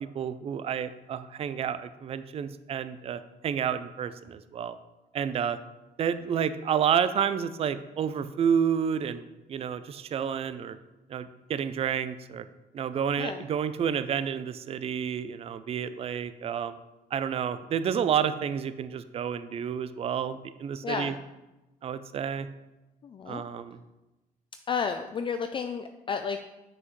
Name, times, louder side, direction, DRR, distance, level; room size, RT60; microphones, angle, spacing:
voice 1, 0.0-4.8 5.1-5.6 6.0-10.8 11.1-12.4 12.7-16.8 17.1-21.2 21.8-22.5 23.3-23.8, right 8 dB, 35° right, 13 dB, 0.4 m, -30 dB
voice 2, 20.8-21.2 23.0-23.4 24.7-26.4, left 6 dB, 30° left, 7 dB, 0.4 m, -32 dB
7.8 x 5.9 x 3.2 m, 1.0 s
cardioid pair, 110°, 17 cm